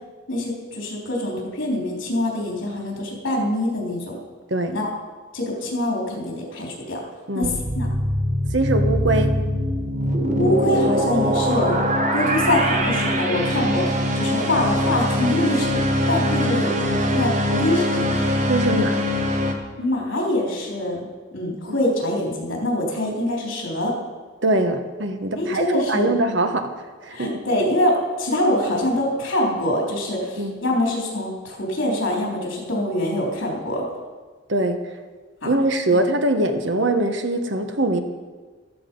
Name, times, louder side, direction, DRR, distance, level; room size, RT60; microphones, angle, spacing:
voice 1, 0.3-4.2 4.7-4.9 5.3-7.0 7.3-7.9 10.4-11.8 12.1-17.3 17.6-18.3 19.8-21.0 21.3-23.9 25.4-26.1 27.1-33.9 35.4-35.5 35.9-36.0, left 1 dB, 75° left, -2 dB, 3.7 m, -24 dB
sound 1, 7.4-19.5, equal, 40° right, 1.3 m, -22 dB
voice 2, 8.5-9.3 17.5-17.7 18.5-19.0 24.4-26.7 27.0-27.3 30.4-30.5 34.5-34.8 35.4-38.0, right 2 dB, 65° right, 6 dB, 1.3 m, -22 dB
14.0 x 12.5 x 5.4 m, 1.4 s
head